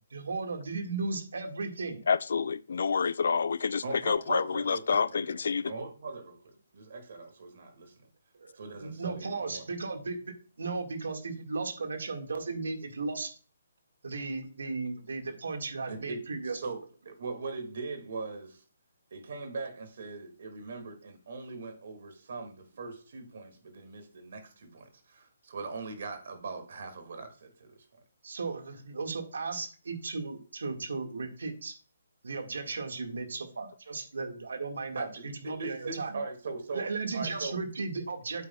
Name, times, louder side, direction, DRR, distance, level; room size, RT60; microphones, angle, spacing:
voice 1, 0.1-2.0 8.4-13.3 14.0-16.8 28.2-31.7 32.2-36.2 36.7-38.4, right 4 dB, 80° right, 1.8 m, -36 dB
voice 2, 2.1-5.7, left 5 dB, 70° left, 0.3 m, -28 dB
voice 3, 3.8-5.4 5.7-6.4 6.7-8.0 8.6-9.7 15.9-16.8 17.1-18.6 19.1-27.8 35.0-36.9 37.1-37.6, right 3 dB, 60° right, 2.1 m, -40 dB
8.3 x 8.2 x 2.3 m
hypercardioid pair, 160°, 0 cm